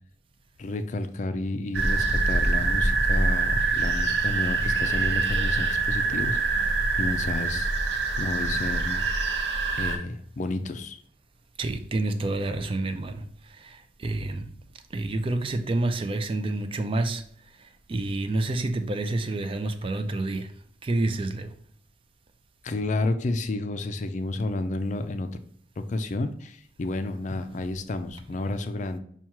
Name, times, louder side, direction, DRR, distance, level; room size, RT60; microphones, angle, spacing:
voice 1, 0.6-7.7 8.1-9.1 9.8-11.0 22.6-25.3 25.8-29.0, left 2 dB, 45° left, 0.4 m, -31 dB
sound 1, 1.7-10.0, right 3 dB, 70° right, 0.7 m, -25 dB
voice 2, 6.4-6.8 11.6-14.5 14.9-21.5 27.5-27.7, right 2 dB, 30° right, 0.4 m, -29 dB
5.7 x 2.3 x 2.9 m
head